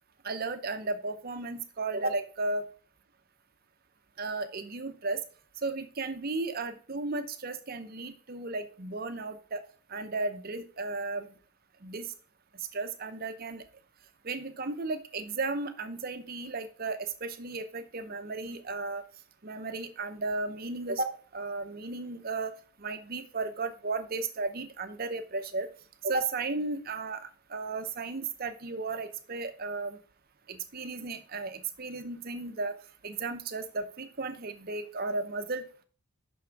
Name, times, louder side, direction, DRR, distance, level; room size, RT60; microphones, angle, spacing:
voice 1, 0.2-2.7 4.2-5.2 5.6-9.6 9.9-11.3 11.8-12.1 12.7-13.6 14.2-19.0 19.4-22.5 22.8-25.7 26.0-30.0 30.5-32.7 33.0-35.8, right 3 dB, 40° right, 9 dB, 0.6 m, -34 dB
6.0 x 5.5 x 4.5 m, 0.39 s
head